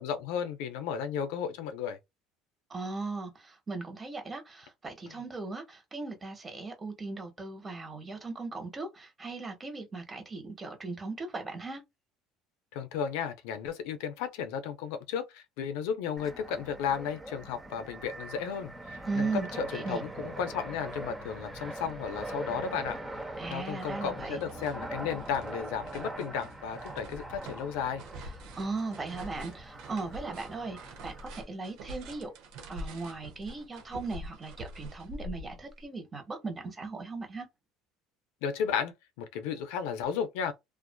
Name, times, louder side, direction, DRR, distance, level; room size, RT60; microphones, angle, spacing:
voice 1, 0.0-2.0 5.1-5.2 12.7-23.0 23.5-28.0 38.4-40.5, left 7 dB, 80° left, 0.5 m, -34 dB
voice 2, 2.7-11.8 19.1-20.0 23.4-24.4 28.6-32.3 32.7-37.5, right 3 dB, 25° right, 1.1 m, -38 dB
Fixed-wing aircraft airplane, 16.2-31.4, right 1 dB, 10° right, 0.7 m, -42 dB
sound 1, 22.7-22.8 23.2-23.9 24.2-35.8, right 1 dB, 70° right, 0.8 m, -46 dB
2.4 x 2.4 x 2.2 m
supercardioid pair, 85°, 0 cm